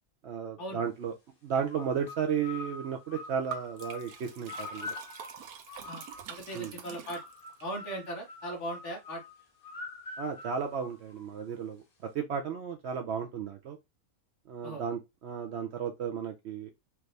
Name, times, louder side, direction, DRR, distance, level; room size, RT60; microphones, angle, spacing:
voice 1, 0.2-1.1 1.4-4.9 6.5-6.8 10.2-13.8 14.5-16.7, right 7 dB, 65° right, 0.7 m, -34 dB
sound 1, 1.7-6.4 7.1-11.5, left 4 dB, 75° left, 1.7 m, -45 dB
Liquid, 3.5-7.7, right 8 dB, 85° right, 1.2 m, -45 dB
voice 2, 6.3-7.2 7.6-9.2 14.6-14.8, right 1 dB, 55° left, 1.7 m, -38 dB
4.6 x 2.6 x 3.2 m
omnidirectional pair, 1.5 m